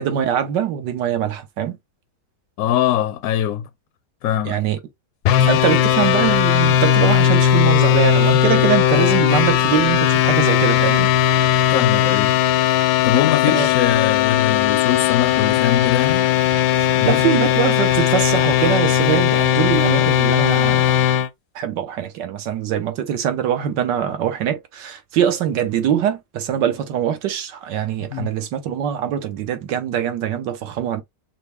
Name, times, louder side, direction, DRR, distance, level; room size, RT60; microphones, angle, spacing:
voice 1, 0.0-1.8 4.4-4.8 5.4-11.1 13.5-13.7 16.8-20.9 21.5-31.0, right 9 dB, 75° right, 1.5 m, -23 dB
voice 2, 2.6-3.7 4.2-4.6 11.7-12.3 13.0-16.3 17.0-17.2 28.1-28.3, left 11 dB, 70° left, 0.8 m, -22 dB
sound 1, 5.3-21.3, left 10 dB, 90° left, 1.3 m, -17 dB
5.7 x 2.2 x 3.4 m
omnidirectional pair, 1.9 m